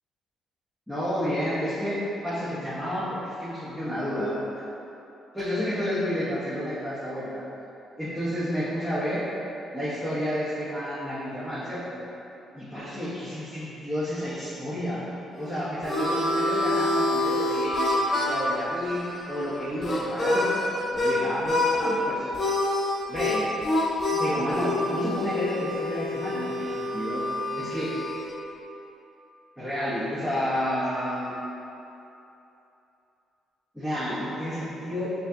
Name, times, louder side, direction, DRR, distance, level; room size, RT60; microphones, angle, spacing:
voice 1, 0.9-2.0 2.2-3.0 3.4-4.4 5.3-7.4 8.0-9.2 9.7-12.0 12.5-15.0 15.4-19.0 19.3-22.3 23.1-23.5 24.2-27.2 27.5-27.9 29.6-31.3 33.7-35.1, equal, ahead, -13 dB, 1.0 m, -30 dB
Harmonica, 15.4-21.2 21.4-22.0 22.3-28.4, left 1 dB, 40° left, 0.8 m, -27 dB
5.0 x 2.8 x 2.6 m, 2.9 s
cardioid pair, 90°, 0 cm